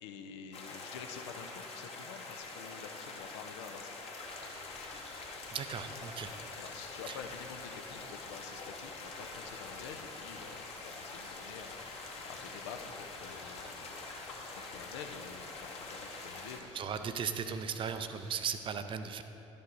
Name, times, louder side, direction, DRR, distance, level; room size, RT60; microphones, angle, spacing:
voice 1, 0.0-4.0 6.5-17.1, left 6 dB, 65° left, 6 dB, 0.6 m, -49 dB
sound 1, 0.5-16.6, left 3 dB, 40° left, 1.2 m, -45 dB
sound 2, 4.2-18.6, left 2 dB, 80° left, 1.3 m, -56 dB
voice 2, 5.5-6.3 7.1-7.2 16.7-19.2, right 7 dB, 35° right, 8 dB, 0.5 m, -37 dB
11.5 x 5.3 x 3.9 m, 2.9 s
figure-of-eight pair, 60°, 15 cm